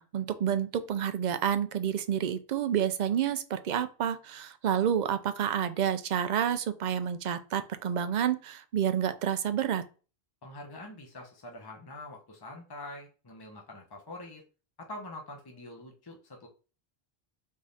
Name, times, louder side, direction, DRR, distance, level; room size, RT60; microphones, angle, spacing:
voice 1, 0.0-9.8, right 9 dB, 55° right, 11 dB, 0.5 m, -29 dB
voice 2, 10.4-14.4 14.8-16.5, left 1 dB, 25° left, 1 dB, 0.9 m, -45 dB
3.6 x 3.2 x 4.0 m, 0.35 s
omnidirectional pair, 1.1 m